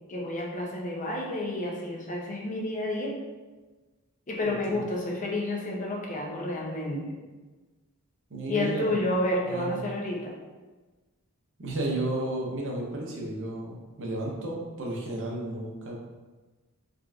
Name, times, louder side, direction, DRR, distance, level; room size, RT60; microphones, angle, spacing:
voice 1, 0.1-3.2 4.3-7.2 8.5-10.4, left 1 dB, 35° left, -1 dB, 0.6 m, -30 dB
voice 2, 8.3-9.0 9.4-9.8 11.6-16.0, right 1 dB, 60° right, -2 dB, 0.8 m, -33 dB
3.8 x 3.3 x 2.4 m, 1.3 s
head